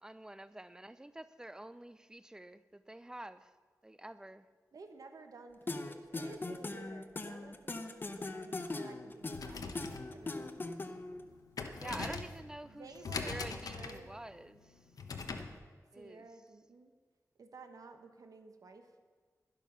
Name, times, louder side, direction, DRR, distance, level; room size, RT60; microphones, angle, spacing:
voice 1, 0.0-3.5 3.8-4.5 11.7-12.9 13.2-14.7 15.9-16.3, right 1 dB, 10° right, 14 dB, 0.5 m, -48 dB
voice 2, 4.7-11.0 11.8-12.3 12.6-14.1 15.9-16.9 17.4-18.9, right 3 dB, 70° right, 6 dB, 1.3 m, -53 dB
sound 1, 5.7-11.2, left 2 dB, 35° left, 0.8 m, -40 dB
sound 2, 9.2-15.6, left 4 dB, 75° left, 1.0 m, -43 dB
12.0 x 11.0 x 5.7 m, 1.5 s
wide cardioid pair, 135°, 6 cm